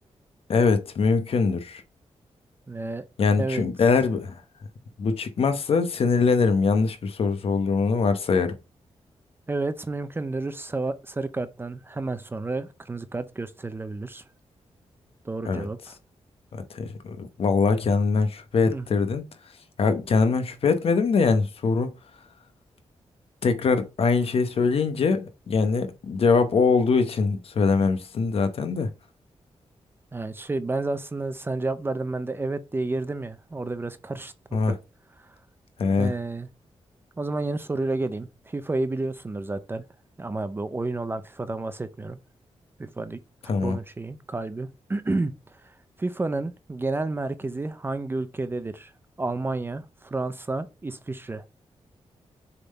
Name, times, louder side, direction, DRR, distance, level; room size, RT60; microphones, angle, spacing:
voice 1, 0.5-1.8 3.2-4.4 5.0-8.5 15.4-15.7 16.5-19.2 19.8-21.9 23.4-28.9 34.5-34.7 35.8-36.1 43.5-43.8, left 4 dB, 60° left, 0.9 m, -23 dB
voice 2, 2.7-3.0 3.4-3.6 9.5-14.2 15.2-15.8 18.6-18.9 30.1-34.8 35.2-35.3 36.0-36.5 37.2-39.8 40.2-42.2 42.8-43.2 43.6-48.9 49.2-51.4, right 2 dB, 20° right, 0.5 m, -30 dB
6.9 x 3.7 x 4.1 m
wide cardioid pair, 150°, 11 cm